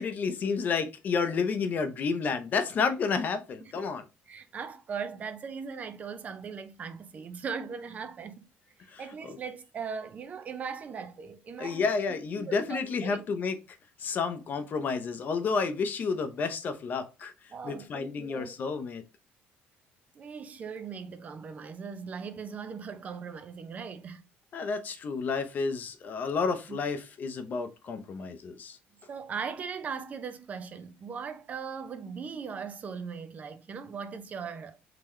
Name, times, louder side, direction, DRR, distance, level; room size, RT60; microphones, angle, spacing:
voice 1, 0.0-4.0 8.9-9.0 11.6-13.6 14.0-17.3 17.6-19.0 24.5-28.8, left 5 dB, 40° left, 0.7 m, -30 dB
voice 2, 4.3-8.5 9.0-11.9 12.4-13.2 17.5-18.5 20.1-24.2 26.7-26.8 29.1-34.8, right 6 dB, 35° right, 0.4 m, -39 dB
3.8 x 2.9 x 3.1 m
cardioid pair, 140°, 4 cm